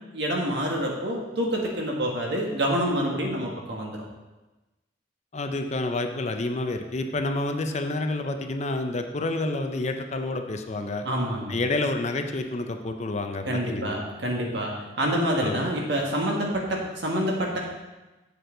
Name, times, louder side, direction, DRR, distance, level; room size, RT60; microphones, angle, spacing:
voice 1, 0.1-4.0 11.0-11.6 13.4-17.6, equal, 65° right, -1 dB, 1.6 m, -27 dB
voice 2, 5.3-11.1 11.5-14.0 15.4-15.6, left 2 dB, 35° left, 6 dB, 0.6 m, -29 dB
8.3 x 6.8 x 3.8 m, 1.1 s
head